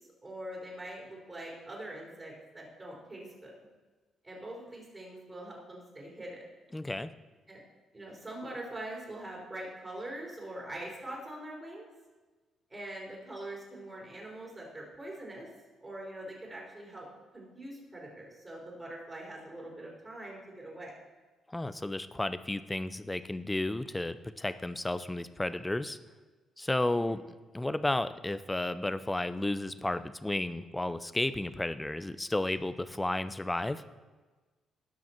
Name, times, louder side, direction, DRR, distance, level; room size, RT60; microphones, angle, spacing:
voice 1, 0.2-3.5 4.2-6.4 7.5-7.6 7.9-11.9 12.7-15.5 15.8-17.1 17.3-20.9 27.0-27.1, right 1 dB, 25° right, -4 dB, 4.1 m, -43 dB
voice 2, 6.7-7.1 21.5-26.0 26.6-27.2 27.5-33.8, left 1 dB, 10° left, 13 dB, 0.6 m, -32 dB
18.0 x 6.1 x 4.5 m, 1.3 s
cardioid pair, 90°, 0 cm